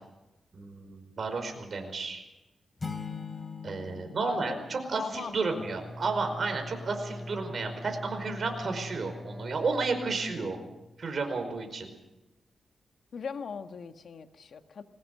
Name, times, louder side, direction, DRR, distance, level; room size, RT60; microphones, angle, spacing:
voice 1, 0.5-2.2 3.6-10.6 11.0-11.9, right 4 dB, 55° right, 5 dB, 5.0 m, -32 dB
sound 1, 2.8-5.6, left 5 dB, 35° left, 3.1 m, -41 dB
voice 2, 3.9-4.6 5.0-5.4 13.1-14.8, left 6 dB, 70° left, 8 dB, 1.4 m, -39 dB
Bowed string instrument, 5.5-11.0, left 1 dB, 15° left, 5.5 m, -42 dB
22.0 x 19.5 x 6.7 m, 1.0 s
cardioid pair, 80°, 0 cm